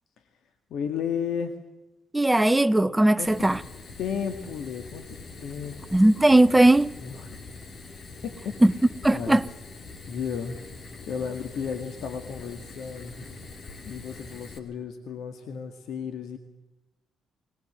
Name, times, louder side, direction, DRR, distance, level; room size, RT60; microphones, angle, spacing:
voice 1, 0.7-1.6 3.2-3.5 4.0-6.0 7.0-7.3 8.2-8.6 9.1-9.4 10.1-10.6 11.1-13.2 13.8-16.4, left 7 dB, 75° left, 1.9 m, -33 dB
voice 2, 2.1-3.6 5.9-7.0 8.6-8.7 9.0-9.4, right 1 dB, 10° right, 0.8 m, -18 dB
Fire, 3.3-14.6, left 3 dB, 50° left, 3.1 m, -43 dB
20.5 x 20.0 x 8.0 m
cardioid pair, 90°, 0 cm